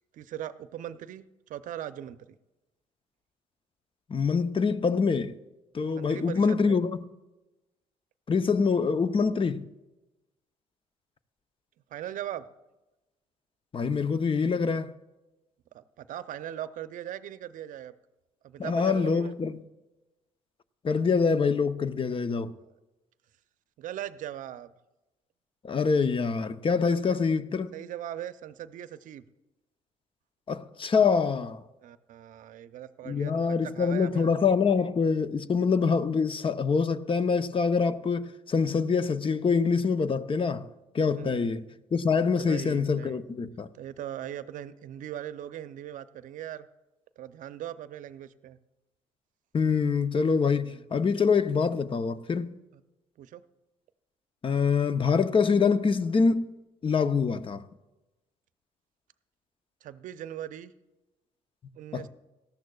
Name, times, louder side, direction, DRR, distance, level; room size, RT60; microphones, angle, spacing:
voice 1, 0.1-1.2 1.5-2.2 5.9-6.8 11.9-12.4 15.7-17.9 18.4-19.3 22.6-22.7 23.8-24.7 27.1-27.2 27.7-29.2 31.8-34.3 41.2-41.5 42.4-43.3 43.7-46.7 47.2-48.6 50.5-50.9 53.2-53.4 59.8-60.7 61.8-62.1, right 11 dB, 65° right, 0.6 m, -39 dB
voice 2, 4.1-5.3 5.7-7.0 8.3-9.6 13.7-14.9 18.6-19.6 20.8-22.5 25.6-27.7 30.5-31.6 33.0-40.7 40.9-41.6 41.9-43.7 49.5-52.5 54.4-56.5 56.8-57.6 61.9-62.1, left 5 dB, 35° left, 0.8 m, -25 dB
18.0 x 13.0 x 2.4 m
hypercardioid pair, 55°, 14 cm